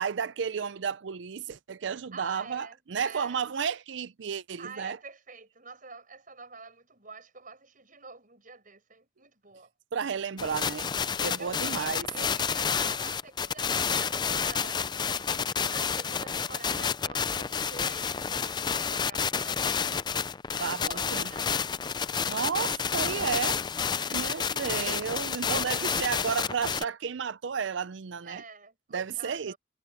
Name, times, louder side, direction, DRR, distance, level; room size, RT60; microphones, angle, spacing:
voice 1, 0.0-5.0 9.9-10.9 11.2-12.1 20.6-21.3 22.3-23.6 24.1-28.4 28.9-29.5, right 6 dB, 70° right, 0.5 m, -32 dB
voice 2, 2.1-3.4 4.6-9.7 11.4-20.0 20.6-21.5 24.0-24.6 25.3-25.7 28.2-29.6, right 4 dB, 45° right, 7.2 m, -47 dB
sound 1, 10.4-26.8, left 6 dB, 20° left, 0.4 m, -30 dB
head